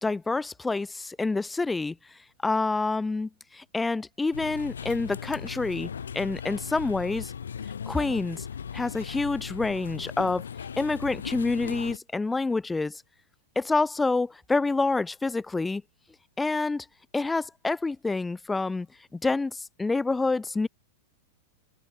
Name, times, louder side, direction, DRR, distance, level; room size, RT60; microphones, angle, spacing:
voice 1, 0.0-2.0 2.4-7.3 7.9-8.5 8.7-10.4 10.8-13.0 13.6-15.8 16.4-16.9 17.1-18.9 19.1-20.7, left 3 dB, 10° left, 0.5 m, -27 dB
sound 1, 4.3-12.0, left 7 dB, 85° left, 0.9 m, -38 dB
hypercardioid pair, 105°, 0 cm